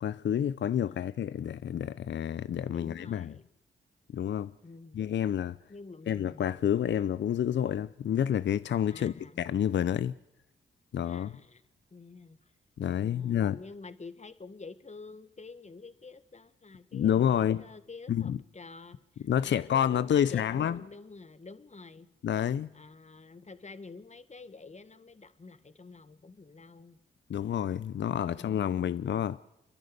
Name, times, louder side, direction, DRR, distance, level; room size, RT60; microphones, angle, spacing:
voice 1, 0.0-3.3 4.1-4.5 4.9-5.6 6.1-10.1 10.9-11.3 12.8-13.6 16.9-17.6 18.1-18.4 19.2-20.8 22.2-22.7 27.3-29.4, left 9 dB, 65° left, 0.6 m, -29 dB
voice 2, 2.5-3.5 4.6-5.0 5.7-6.4 8.9-9.5 11.0-11.6 11.9-12.4 13.0-22.1 22.7-27.0, left 3 dB, 35° left, 1.8 m, -48 dB
29.5 x 11.0 x 8.1 m
supercardioid pair, 45°, 20 cm